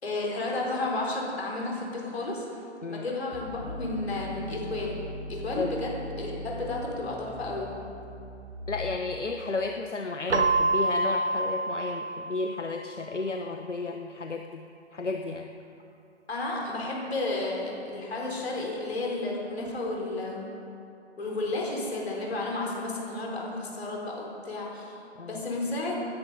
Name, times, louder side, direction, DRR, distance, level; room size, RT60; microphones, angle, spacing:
voice 1, 0.0-2.4 2.9-5.0 5.3-7.8 16.3-20.5 21.2-25.0 25.3-26.0, left 2 dB, 60° left, -2 dB, 4.3 m, -32 dB
sound 1, 3.3-9.3, left 1 dB, 40° left, 2.3 m, -40 dB
voice 2, 8.7-14.6 14.9-15.5 25.2-25.4, left 3 dB, 85° left, 4 dB, 0.9 m, -33 dB
Keyboard (musical), 10.3-13.0, right 2 dB, 80° right, 0.9 m, -27 dB
18.0 x 10.0 x 5.2 m, 2.5 s
figure-of-eight pair, 140°, 35 cm